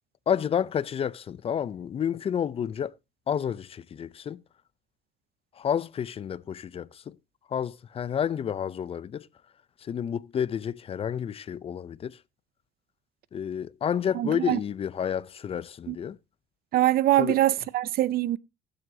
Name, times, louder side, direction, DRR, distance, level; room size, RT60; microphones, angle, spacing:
voice 1, 0.3-2.9 3.3-4.4 5.6-7.2 7.5-9.3 9.8-12.2 13.3-16.2 17.2-17.4, left 8 dB, 35° left, 0.4 m, -30 dB
voice 2, 14.1-14.6 15.9-16.0 16.7-18.4, right 14 dB, 65° right, 0.5 m, -23 dB
16.0 x 7.8 x 2.6 m
cardioid pair, 110°, 17 cm